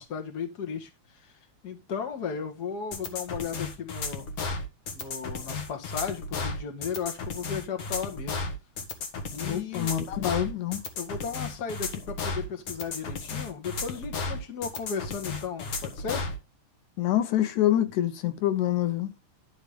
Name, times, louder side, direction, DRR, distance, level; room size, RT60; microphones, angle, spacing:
voice 1, 0.0-1.3 1.6-4.3 4.9-8.4 9.3-9.9 11.0-16.3, left 6 dB, 40° left, 1.9 m, -35 dB
sound 1, 2.9-16.4, left 3 dB, 55° left, 2.3 m, -34 dB
voice 2, 9.5-10.8 17.0-19.1, left 12 dB, 85° left, 2.3 m, -26 dB
11.5 x 4.0 x 5.1 m
omnidirectional pair, 3.3 m